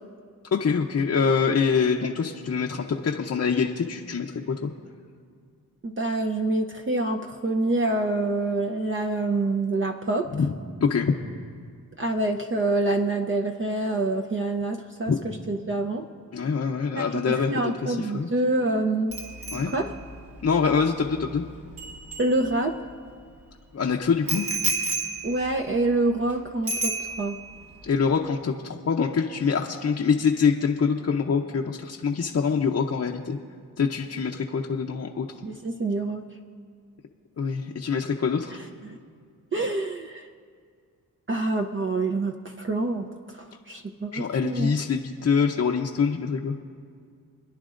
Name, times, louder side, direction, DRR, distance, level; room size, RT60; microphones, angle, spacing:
voice 1, 0.5-4.7 10.3-10.5 10.8-11.1 15.1-15.2 16.3-18.3 19.5-19.7 20.4-21.4 23.7-24.4 27.8-33.4 33.8-35.3 37.4-38.6 44.1-46.5, left 5 dB, 40° left, 1 dB, 0.8 m, -25 dB
voice 2, 5.8-10.2 12.0-16.0 17.0-17.1 17.5-19.2 19.7-19.9 22.2-22.7 25.2-27.4 35.4-36.2 38.8-39.0 39.5-40.3 41.3-44.7, right 2 dB, 30° right, 2 dB, 0.7 m, -26 dB
Bicycle bell, 19.1-22.9 24.3-26.3 26.7-27.5 27.8-28.1, right 2 dB, 60° right, 2.4 m, -32 dB
27.5 x 10.5 x 2.6 m, 2.1 s
cardioid pair, 70°, 38 cm